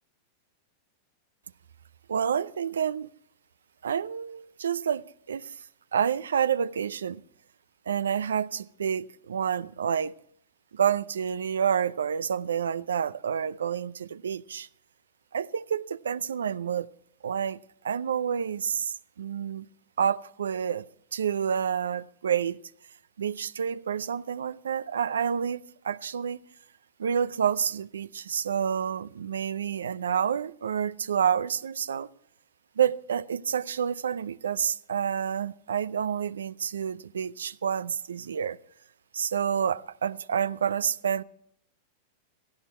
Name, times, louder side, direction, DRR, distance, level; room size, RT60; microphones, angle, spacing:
voice 1, 2.1-3.1 3.8-5.6 5.9-7.2 7.9-10.1 10.7-14.7 15.3-16.9 17.2-17.6 17.8-19.7 20.0-20.9 21.1-22.6 23.2-26.4 27.0-32.1 32.8-38.6 39.1-41.2, right 8 dB, 85° right, 0.5 m, -29 dB
17.0 x 14.5 x 4.3 m
hypercardioid pair, 105°, 0 cm